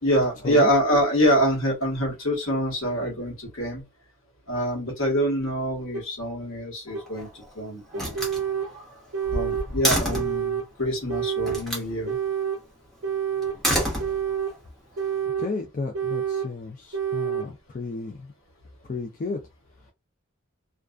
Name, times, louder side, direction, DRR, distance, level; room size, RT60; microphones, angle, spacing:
voice 1, 0.0-3.8 4.5-8.2 9.3-12.2, equal, 75° left, 1.2 m, -25 dB
sound 1, 5.9-6.0 6.9-7.0 7.9-8.7 9.1-9.7 10.1-10.7 11.1-11.6 12.1-12.6 13.0-13.6 14.0-14.6 15.0-15.5 15.9-16.5 16.9-17.5, right 8 dB, 85° right, 0.5 m, -28 dB
Slam, 6.9-7.5 7.9-10.4 11.5-11.9 13.4-14.6, equal, ahead, 0.8 m, -28 dB
voice 2, 15.4-18.3 18.8-19.4 19.7-19.8, left 3 dB, 40° left, 0.4 m, -33 dB
2.4 x 2.2 x 2.3 m
head